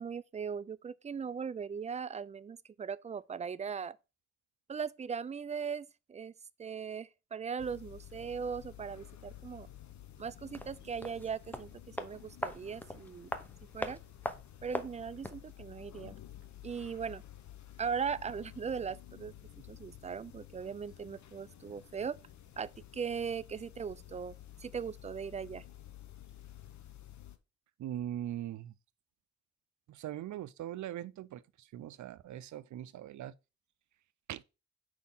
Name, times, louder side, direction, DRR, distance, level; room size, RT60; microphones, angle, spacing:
voice 1, 0.0-4.0 4.7-6.3 6.6-9.7 10.2-13.3 13.7-14.0 14.6-16.2 16.6-17.2 17.8-19.3 19.7-22.2 22.6-24.3 24.6-25.6, right 6 dB, 25° right, 0.3 m, -39 dB
sound 1, 7.6-27.4, left 12 dB, 75° left, 0.8 m, -52 dB
sound 2, 10.5-15.5 15.7-15.8, left 1 dB, 5° left, 0.8 m, -41 dB
voice 2, 27.8-28.7 29.9-31.4 31.7-33.3 34.3-34.4, right 12 dB, 85° right, 0.5 m, -40 dB
4.7 x 4.2 x 5.4 m
cardioid pair, 85°, 29 cm